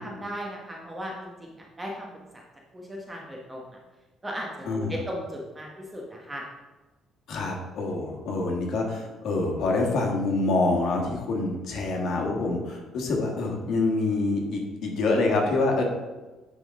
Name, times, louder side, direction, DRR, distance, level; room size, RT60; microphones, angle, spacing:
voice 1, 0.0-2.4 2.7-3.8 4.2-6.4, equal, 15° right, -1 dB, 1.0 m, -37 dB
voice 2, 4.7-5.0 7.3-15.8, left 3 dB, 65° left, 0 dB, 1.6 m, -26 dB
9.7 x 3.7 x 3.7 m, 1.2 s
cardioid pair, 125°, 0 cm